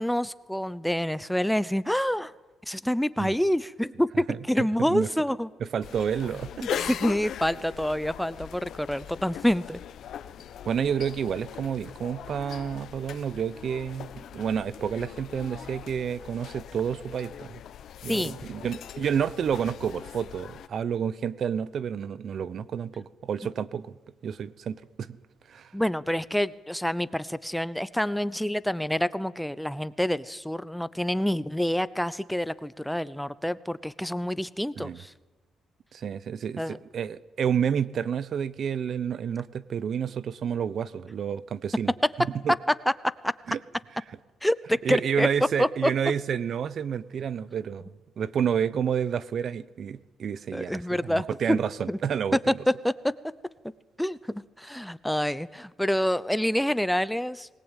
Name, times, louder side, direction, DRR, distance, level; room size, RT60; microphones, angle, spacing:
voice 1, 0.0-2.3 2.7-5.5 6.6-9.8 18.1-18.4 25.7-35.1 36.6-36.8 43.2-43.3 44.4-45.3 45.6-45.9 50.5-51.6 51.9-52.0 52.8-52.9 54.0-57.5, equal, 5° left, 17 dB, 0.7 m, -27 dB
voice 2, 4.6-5.1 5.6-6.8 10.7-17.5 18.0-23.9 24.2-25.2 25.5-25.7 34.8-35.0 35.9-41.9 42.4-42.5 43.5-43.6 44.8-52.4, right 7 dB, 60° right, 18 dB, 0.8 m, -30 dB
sound 1, 5.8-20.7, left 9 dB, 70° left, 1.1 m, -40 dB
21.5 x 19.0 x 9.1 m, 1.2 s
cardioid pair, 90°, 0 cm